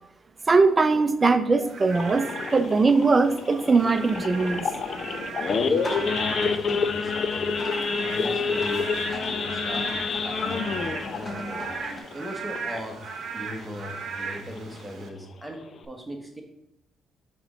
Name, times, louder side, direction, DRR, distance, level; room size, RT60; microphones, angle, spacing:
voice 1, 0.5-2.3 2.5-4.7, right 4 dB, 30° right, 10 dB, 0.5 m, -20 dB
Frog / Rain, 1.6-15.1, right 4 dB, 60° right, 0.9 m, -38 dB
Idling / Accelerating revving vroom / Sawing, 1.9-13.0 13.4-13.6 13.9-14.0 14.5-14.7 15.2-15.3 15.5-15.8, left 5 dB, 55° left, 0.6 m, -29 dB
sound 1, 4.0-12.0, left 1 dB, 25° left, 1.1 m, -39 dB
voice 2, 5.4-7.5 8.0-9.9 10.2-10.8 11.1-11.7 12.1-13.0 13.3-16.4, equal, 5° right, 2 dB, 1.2 m, -39 dB
6.0 x 3.1 x 5.3 m, 0.81 s
cardioid pair, 90°, 0 cm